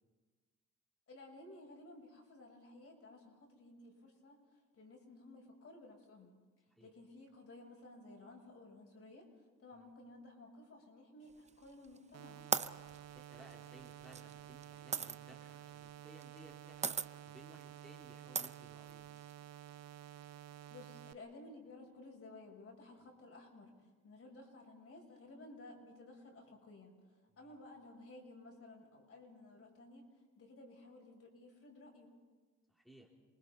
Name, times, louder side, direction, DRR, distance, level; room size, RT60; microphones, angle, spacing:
voice 1, 1.1-4.4 4.7-6.4 6.8-9.3 9.6-12.4 20.7-27.0 27.4-30.1 30.4-32.2, left 2 dB, 50° left, 1 dB, 6.7 m, -55 dB
sound 1, 11.5-12.0 12.5-15.2 16.2-16.5 16.8-17.1 17.6-17.7 18.3-19.3, right 5 dB, 25° right, 0.6 m, -37 dB
sound 2, 12.1-21.1, right 11 dB, 60° right, 0.7 m, -52 dB
voice 2, 13.1-17.0 17.3-19.1 27.4-27.6 32.7-33.1, right 1 dB, ahead, -2 dB, 3.4 m, -60 dB
28.0 x 20.5 x 5.6 m, 1.4 s
cardioid pair, 90°, 30 cm